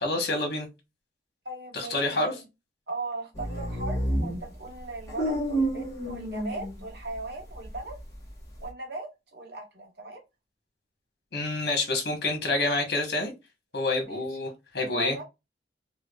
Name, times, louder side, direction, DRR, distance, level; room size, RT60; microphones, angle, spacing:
voice 1, 0.0-0.7 1.7-2.3 11.3-13.3 13.7-15.2, left 2 dB, 60° left, 1.1 m, -28 dB
voice 2, 1.4-2.5 2.9-8.0 8.6-10.2 14.1-14.2 14.9-15.2, right 2 dB, 65° right, 1.1 m, -38 dB
sound 1, 3.4-7.2 7.5-8.7, right 1 dB, 20° left, 1.2 m, -30 dB
4.5 x 2.2 x 2.3 m
head